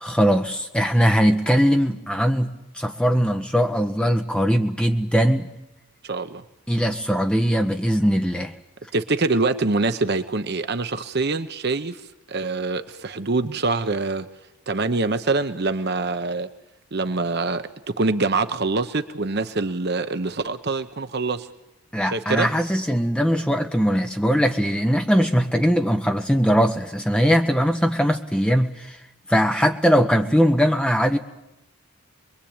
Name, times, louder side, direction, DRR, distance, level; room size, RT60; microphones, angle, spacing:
voice 1, 0.0-5.5 6.7-8.5 21.9-29.0 29.3-31.2, equal, 5° left, 5 dB, 1.3 m, -20 dB
voice 2, 6.0-6.4 8.9-12.0 12.3-14.3 14.7-16.5 16.9-17.7 18.0-21.5 22.1-22.5, right 3 dB, 45° right, 9 dB, 0.9 m, -24 dB
25.5 x 21.5 x 8.8 m, 0.91 s
head